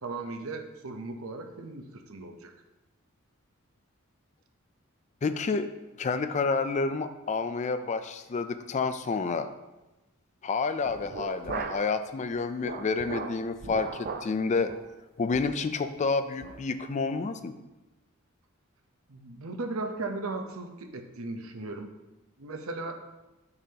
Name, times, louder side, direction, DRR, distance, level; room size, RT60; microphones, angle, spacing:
voice 1, 0.0-2.5 19.1-21.9 22.4-23.0, right 3 dB, 70° right, 5 dB, 0.7 m, -37 dB
voice 2, 5.2-5.7 6.0-9.5 10.4-14.7 15.2-17.5, left 4 dB, 35° left, 10 dB, 0.3 m, -29 dB
sound 1, 10.8-12.0 12.3-14.4 14.7-14.9 15.3-15.6 16.0-16.1 16.4-16.6, right 4 dB, 45° right, 0.4 m, -38 dB
6.9 x 6.7 x 2.9 m, 1.0 s
head